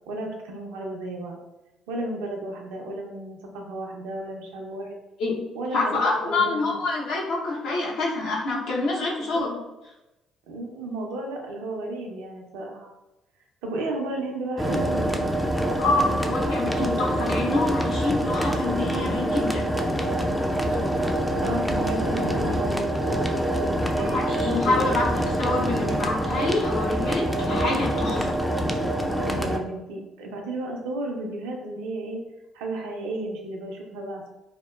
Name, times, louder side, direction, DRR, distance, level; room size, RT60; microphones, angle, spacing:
voice 1, 0.1-1.4 1.9-5.0 5.5-6.0 6.3-6.8 9.2-9.5 10.5-12.9 13.6-15.3 20.6-24.9 29.2-32.2 32.5-34.3, right 1 dB, 80° right, 1 dB, 0.4 m, -33 dB
voice 2, 5.7-9.6 15.8-19.7 24.0-28.3, left 3 dB, 70° left, -3 dB, 0.7 m, -26 dB
sound 1, 14.6-29.6, right 1 dB, ahead, 0.3 m, -25 dB
2.8 x 2.1 x 2.2 m, 0.99 s
hypercardioid pair, 55°, 0 cm